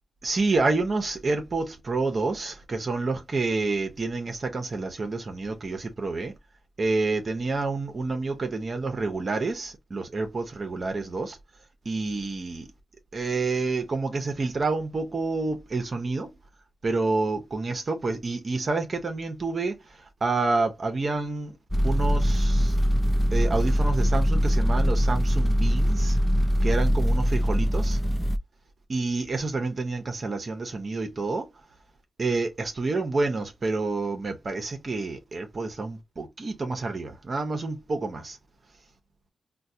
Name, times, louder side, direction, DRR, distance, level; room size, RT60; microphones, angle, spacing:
voice 1, 0.2-6.3 6.8-11.4 11.8-12.7 13.1-16.3 16.8-21.5 21.8-22.8 23.3-26.2 26.6-28.0 28.9-31.5 32.2-38.4, right 3 dB, 35° right, 0.7 m, -28 dB
sound 1, 21.7-28.4, equal, 5° left, 0.3 m, -22 dB
4.4 x 2.2 x 2.7 m
wide cardioid pair, 125°, 0 cm